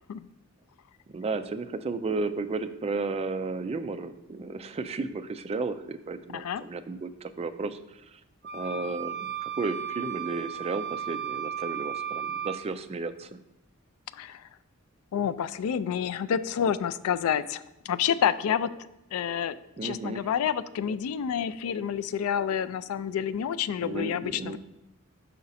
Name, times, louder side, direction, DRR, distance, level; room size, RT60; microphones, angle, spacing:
voice 1, 1.1-8.2 8.5-13.3 19.8-20.3 23.8-24.6, right 3 dB, 30° right, 10 dB, 0.3 m, -33 dB
voice 2, 6.3-6.6 14.1-14.4 15.1-18.7 19.1-19.6 19.8-24.6, left 8 dB, 70° left, 14 dB, 0.3 m, -28 dB
sound 1, 8.4-12.6, right 8 dB, 50° right, 0.8 m, -35 dB
5.7 x 5.1 x 4.1 m, 0.90 s
head